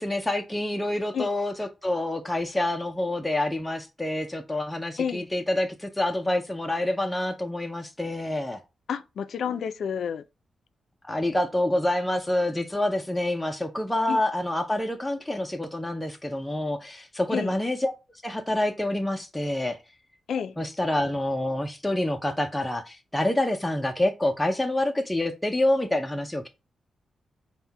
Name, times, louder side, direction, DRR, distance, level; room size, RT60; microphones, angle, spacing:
voice 1, 0.0-8.6 11.1-17.9 18.2-19.8 20.6-26.5, left 1 dB, 5° left, 0.4 m, -27 dB
voice 2, 8.9-10.2 14.1-14.2 17.3-17.5 20.3-20.5, left 7 dB, 70° left, 0.4 m, -29 dB
5.4 x 2.1 x 4.4 m
wide cardioid pair, 155°, 0 cm